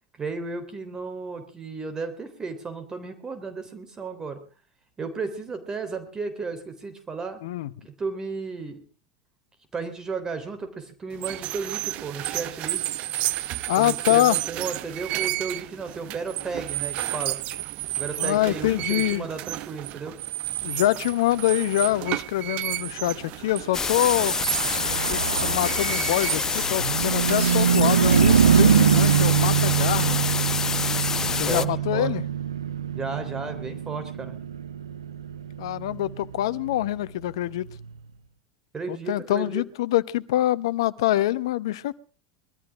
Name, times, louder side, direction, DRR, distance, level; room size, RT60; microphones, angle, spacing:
voice 1, 0.2-4.4 5.0-7.4 7.8-8.8 9.7-12.8 13.8-17.4 17.9-20.2 31.5-32.1 32.9-34.4 38.7-39.6, right 4 dB, 25° right, 9 dB, 3.7 m, -34 dB
sound 1, 11.1-30.4, right 16 dB, 50° right, 0.7 m, -32 dB
voice 2, 13.7-14.4 18.2-19.3 20.6-24.4 25.1-30.2 31.4-32.2 35.6-37.7 38.9-41.9, left 14 dB, 70° left, 17 dB, 0.9 m, -25 dB
sound 2, 23.7-31.7, left 5 dB, 20° left, 0.8 m, -27 dB
Car passing by / Truck, 24.0-37.7, right 8 dB, 90° right, 0.7 m, -24 dB
22.0 x 13.5 x 3.7 m, 0.36 s
hypercardioid pair, 90°, 3 cm